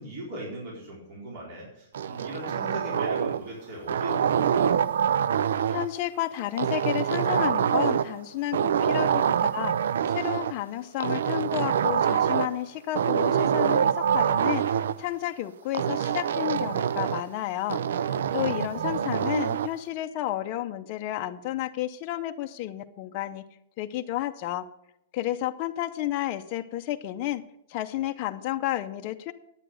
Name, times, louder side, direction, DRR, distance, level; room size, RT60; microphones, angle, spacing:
voice 1, 0.0-4.8 18.1-19.2, right 1 dB, 35° right, -3 dB, 4.1 m, -39 dB
sound 1, 1.9-3.5 3.9-5.9 6.6-8.2 8.5-10.5 11.0-12.6 12.9-15.0 15.7-17.3 17.7-19.7, right 8 dB, 80° right, 0.4 m, -25 dB
voice 2, 5.7-9.8 10.1-17.8 18.3-23.4 23.8-24.7 25.1-27.4 27.7-29.3, left 14 dB, 35° left, 5 dB, 0.6 m, -31 dB
9.9 x 9.0 x 6.3 m, 0.82 s
supercardioid pair, 170°, 0 cm